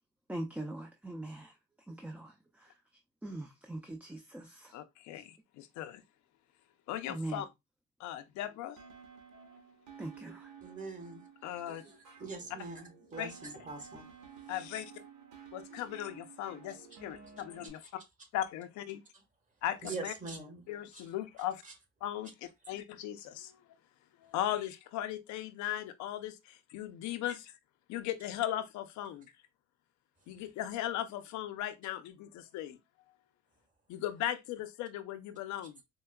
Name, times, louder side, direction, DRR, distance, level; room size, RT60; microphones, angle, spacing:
voice 1, 0.3-1.5 1.9-2.7 3.2-4.7 7.1-7.4 10.0-10.5 11.7-11.8, right 1 dB, 5° right, 0.4 m, -42 dB
voice 2, 4.7-6.0 6.9-7.5 8.0-8.8 9.3-9.5 11.4-11.8 13.2-13.3 14.5-14.9 15.5-17.8 18.3-19.0 19.6-20.1 20.7-21.6 22.0-22.3 22.7-23.6 24.2-27.5 27.9-29.3 30.3-32.8 33.9-35.8, left 12 dB, 75° left, 0.5 m, -38 dB
sound 1, 8.8-17.7, right 7 dB, 75° right, 1.3 m, -53 dB
voice 3, 10.6-11.2 11.5-14.5 17.8-17.9 19.1-19.2 19.8-20.6 20.9-21.1 21.6-21.7, right 3 dB, 25° right, 1.4 m, -44 dB
4.5 x 2.1 x 2.2 m
cardioid pair, 90°, 29 cm